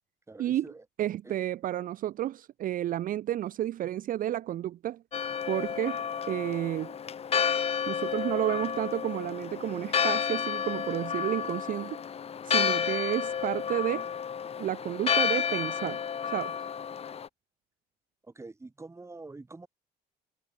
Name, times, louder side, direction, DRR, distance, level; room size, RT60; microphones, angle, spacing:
voice 1, 0.3-0.8 1.2-1.3 12.5-12.8 18.2-19.7, right 3 dB, 15° right, 5.7 m, -46 dB
voice 2, 1.0-5.0 5.5-6.9 7.9-12.0 12.4-14.1 14.6-16.0 16.3-16.5, right 12 dB, 55° right, 0.7 m, -31 dB
Church bell, 5.1-17.3, left 7 dB, 35° left, 1.2 m, -31 dB
cardioid pair, 110°, 17 cm